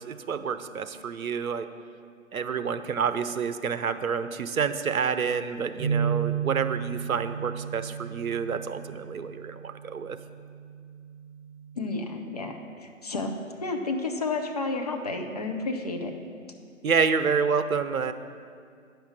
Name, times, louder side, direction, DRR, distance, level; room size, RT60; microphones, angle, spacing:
voice 1, 0.0-1.7 2.3-10.2 16.8-18.1, right 6 dB, 80° right, 10 dB, 0.7 m, -28 dB
sound 1, 5.8-12.0, right 7 dB, 20° right, 1.0 m, -33 dB
voice 2, 11.8-16.1, left 3 dB, 30° left, 3 dB, 0.6 m, -31 dB
9.8 x 5.7 x 7.1 m, 2.2 s
figure-of-eight pair, 155°, 41 cm